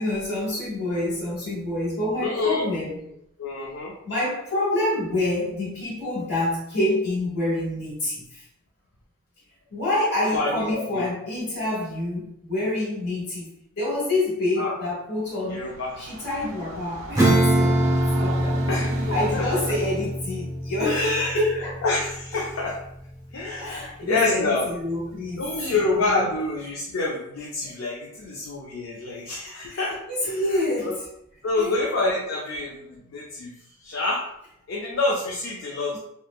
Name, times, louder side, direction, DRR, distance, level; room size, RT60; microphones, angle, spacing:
voice 1, 0.0-3.0 4.0-8.4 9.7-13.5 13.8-15.7 16.0-17.9 18.2-18.7 19.1-21.8 23.6-25.4 25.9-26.2 27.6-27.7 29.7-29.8 30.1-31.1 31.5-31.8, left 1 dB, 50° left, -6 dB, 1.3 m, -27 dB
voice 2, 2.2-2.7 3.4-3.9 10.3-11.1 14.6-14.7 15.5-15.9 18.7-19.7 20.8-21.5 21.8-22.8 23.3-24.7 25.4-30.9 31.4-33.5 33.8-34.2 34.7-36.0, left 3 dB, 65° left, -2 dB, 0.4 m, -27 dB
Train, 15.3-20.2, right 3 dB, 70° right, 0.4 m, -38 dB
Acoustic guitar / Strum, 17.1-23.2, right 1 dB, 15° right, 0.5 m, -24 dB
3.1 x 2.1 x 2.3 m, 0.76 s
head